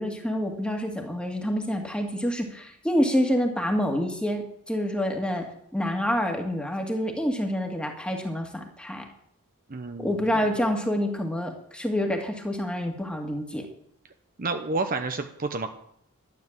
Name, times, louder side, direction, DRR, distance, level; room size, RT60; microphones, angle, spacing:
voice 1, 0.0-5.5 5.7-9.0 10.0-13.7, equal, 5° left, 3 dB, 2.1 m, -27 dB
voice 2, 9.7-10.3 14.4-15.7, right 3 dB, 40° right, 6 dB, 0.9 m, -30 dB
13.0 x 9.9 x 7.5 m, 0.71 s
head